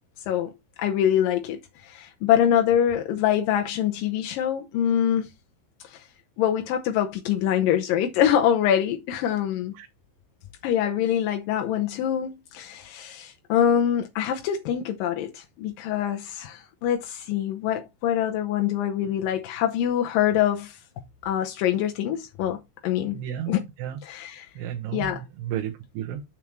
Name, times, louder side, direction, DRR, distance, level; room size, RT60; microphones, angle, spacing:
voice 1, 0.8-5.3 5.8-6.0 6.4-9.7 10.6-20.8 21.2-23.2 23.5-23.6 24.0-24.5 24.9-25.2, left 10 dB, 80° left, 2.0 m, -24 dB
voice 2, 23.1-24.0 24.6-26.2, right 10 dB, 75° right, 3.0 m, -33 dB
7.3 x 6.9 x 3.1 m
omnidirectional pair, 5.0 m